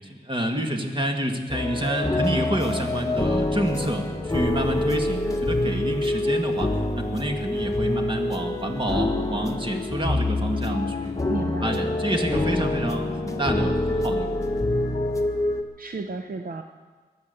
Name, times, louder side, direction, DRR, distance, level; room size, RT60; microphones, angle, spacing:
voice 1, 0.1-11.3 11.6-14.4, right 1 dB, 30° right, 3 dB, 1.9 m, -28 dB
sound 1, 1.5-15.6, left 1 dB, 20° left, 1.3 m, -26 dB
sound 2, 1.6-15.3, left 6 dB, 50° left, 0.7 m, -37 dB
voice 2, 11.3-11.9 15.8-16.6, right 3 dB, 55° right, 5 dB, 0.7 m, -32 dB
21.5 x 8.3 x 6.9 m, 1.4 s
wide cardioid pair, 90°, 17 cm